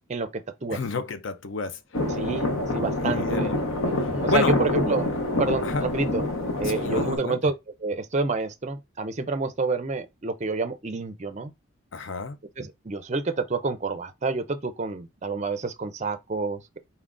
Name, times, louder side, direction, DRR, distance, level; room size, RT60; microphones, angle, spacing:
voice 1, 0.1-0.8 2.2-3.6 4.2-6.2 6.6-7.5 7.8-11.5 12.6-16.8, right 3 dB, 35° right, 0.4 m, -28 dB
voice 2, 0.7-1.8 3.0-3.6 4.0-4.6 5.6-5.9 6.6-7.4 11.9-12.4, left 4 dB, 60° left, 0.5 m, -30 dB
sound 1, 1.9-7.2, left 1 dB, 75° left, 1.1 m, -26 dB
4.3 x 3.7 x 2.4 m
head